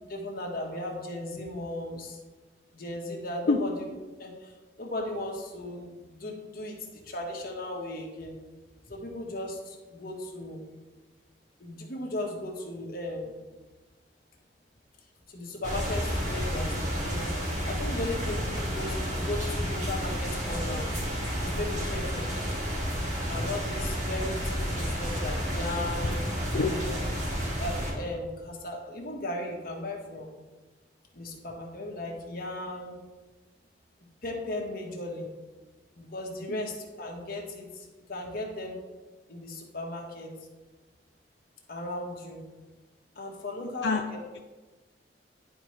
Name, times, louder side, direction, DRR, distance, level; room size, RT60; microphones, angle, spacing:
voice 1, 0.1-2.2 2.7-3.9 4.2-8.3 8.9-10.6 11.6-13.3 15.3-16.8 17.0-17.3 17.7-20.9 21.4-22.3 23.3-26.2 26.7-26.9 27.6-30.3 31.1-33.0 34.2-35.3 35.9-38.8 39.3-40.3 41.7-42.4 43.1-44.2, left 1 dB, 55° left, 0 dB, 1.4 m, -36 dB
sound 1, 15.6-27.9, equal, 45° right, 2.0 m, -31 dB
voice 2, 43.6-44.0, left 4 dB, 85° left, 3 dB, 0.5 m, -27 dB
11.0 x 4.6 x 3.2 m, 1.2 s
head